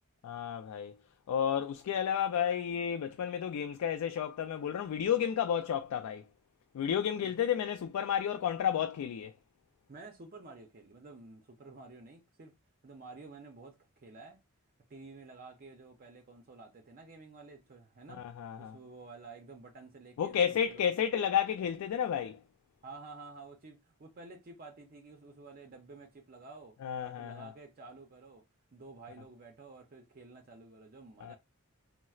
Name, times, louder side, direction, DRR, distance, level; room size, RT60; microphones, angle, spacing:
voice 1, 0.2-1.0 1.3-6.2 6.7-9.3 18.2-18.8 20.2-22.4 26.8-27.5 31.2-31.3, left 8 dB, 85° left, 0.3 m, -31 dB
voice 2, 9.9-12.5 12.8-14.4 14.9-18.3 18.6-20.9 22.8-31.3, right 3 dB, 40° right, 0.5 m, -51 dB
4.2 x 2.0 x 2.3 m
head